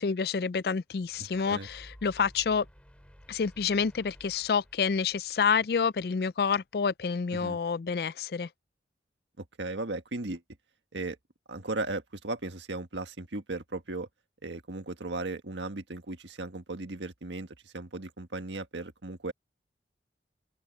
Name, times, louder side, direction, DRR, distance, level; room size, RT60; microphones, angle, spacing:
voice 1, 0.0-2.7 3.3-8.5, left 5 dB, 55° left, 0.4 m, -28 dB
sound 1, 0.9-6.3, equal, 5° left, 7.3 m, -55 dB
voice 2, 1.2-1.7 7.3-7.6 9.4-10.4 10.9-11.2 11.5-14.1 14.4-19.3, right 2 dB, 85° right, 1.6 m, -36 dB
open air
head